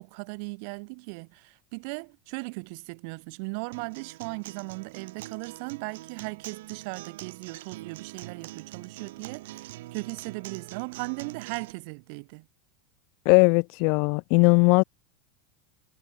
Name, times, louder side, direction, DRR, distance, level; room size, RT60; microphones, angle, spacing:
voice 1, 0.0-12.5, right 36 dB, 45° right, 3.6 m, -38 dB
Acoustic guitar, 3.7-11.7, right 17 dB, 65° right, 7.0 m, -43 dB
voice 2, 13.3-14.8, left 39 dB, 45° left, 0.3 m, -19 dB
supercardioid pair, 175°, 0 cm